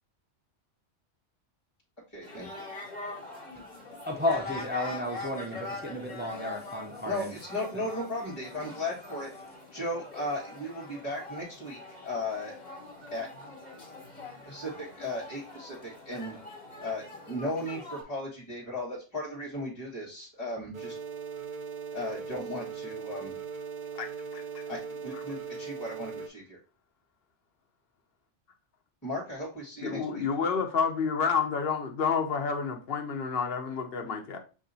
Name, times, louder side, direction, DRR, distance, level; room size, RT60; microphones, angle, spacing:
voice 1, 2.1-2.6 7.0-12.5 13.1-13.3 14.4-16.4 16.8-21.0 21.9-23.3 24.6-26.6 29.0-30.2, left 1 dB, 15° left, 1.6 m, -36 dB
sound 1, 2.2-18.0, left 2 dB, 40° left, 1.6 m, -43 dB
voice 2, 4.1-7.3, left 1 dB, 15° right, 0.3 m, -32 dB
sound 2, 20.7-26.3, right 6 dB, 55° right, 0.6 m, -39 dB
voice 3, 29.8-34.4, left 6 dB, 60° left, 0.9 m, -29 dB
7.0 x 2.8 x 2.6 m
omnidirectional pair, 1.2 m